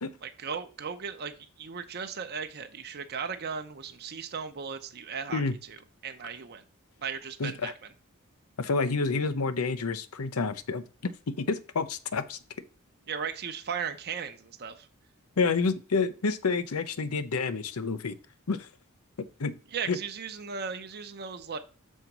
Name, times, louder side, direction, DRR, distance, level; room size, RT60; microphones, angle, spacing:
voice 1, 0.2-5.8 6.0-6.6 7.0-7.7 13.1-14.9 19.7-21.6, right 6 dB, 50° right, 7 dB, 0.7 m, -36 dB
voice 2, 7.4-7.7 8.6-12.4 15.4-18.1 18.5-18.7 19.4-19.6 19.9-20.0, left 4 dB, 85° left, 12 dB, 0.7 m, -29 dB
6.4 x 4.0 x 5.9 m, 0.36 s
head